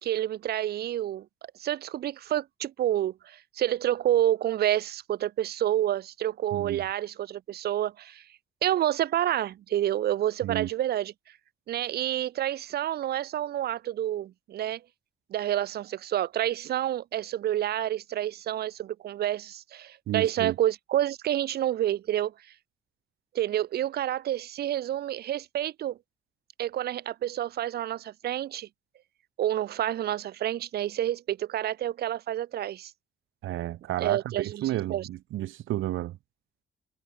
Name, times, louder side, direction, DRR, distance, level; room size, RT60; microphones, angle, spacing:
voice 1, 0.0-1.3 1.6-8.2 8.6-11.1 11.7-14.8 15.3-22.3 23.3-26.0 26.6-28.7 29.4-32.9 34.0-35.1, right 12 dB, 55° right, 0.5 m, -29 dB
voice 2, 6.5-6.8 10.4-10.7 20.1-20.5 33.4-36.2, right 14 dB, 80° right, 1.7 m, -31 dB
cardioid pair, 90°, 20 cm